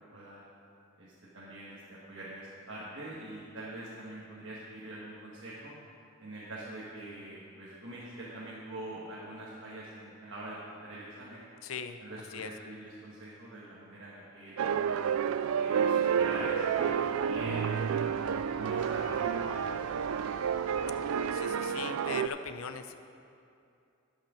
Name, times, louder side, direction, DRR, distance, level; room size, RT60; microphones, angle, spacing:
voice 1, 0.1-0.4 1.0-5.7 6.2-11.4 12.0-15.1 15.5-17.9 18.4-19.5 19.8-19.9, right 1 dB, 60° right, -7 dB, 1.4 m, -44 dB
voice 2, 11.6-12.0 12.3-12.5 21.3-22.9, left 6 dB, 80° left, 9 dB, 0.6 m, -39 dB
sound 1, 14.6-22.3, right 7 dB, 80° right, 0.3 m, -30 dB
sound 2, 16.1-21.4, left 2 dB, 55° left, 1.0 m, -50 dB
12.0 x 5.8 x 6.2 m, 2.6 s
head